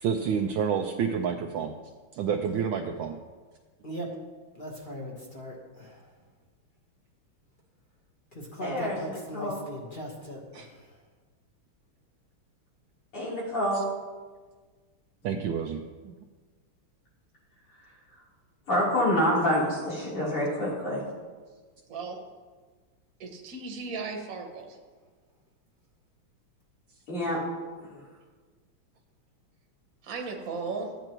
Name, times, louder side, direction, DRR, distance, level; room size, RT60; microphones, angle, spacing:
voice 1, 0.0-1.7 2.1-3.2 10.5-10.7 13.7-13.8 15.2-15.8 16.0-16.1, right 7 dB, 75° right, 4 dB, 1.2 m, -29 dB
voice 2, 4.5-6.0 8.3-10.8, equal, 30° left, -2 dB, 1.0 m, -39 dB
voice 3, 8.6-9.6 13.1-13.8 18.7-21.0 27.1-27.4, equal, 80° left, -8 dB, 4.4 m, -27 dB
voice 4, 23.2-24.8 30.0-30.9, right 4 dB, 50° right, 1 dB, 1.4 m, -36 dB
13.0 x 8.8 x 3.0 m, 1.4 s
omnidirectional pair, 2.4 m